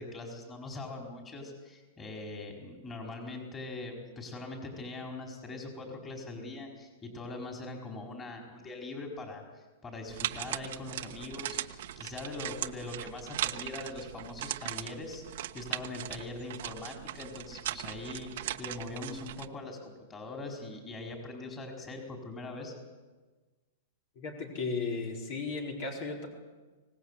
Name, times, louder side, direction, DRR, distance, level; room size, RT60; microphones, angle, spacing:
voice 1, 0.0-22.7, left 2 dB, 20° left, 1 dB, 4.8 m, -42 dB
sound 1, 10.1-19.5, right 13 dB, 65° right, 1.1 m, -39 dB
voice 2, 24.2-26.3, left 4 dB, 50° left, 1 dB, 4.4 m, -35 dB
25.0 x 18.5 x 8.3 m, 1.3 s
hypercardioid pair, 145°, 0 cm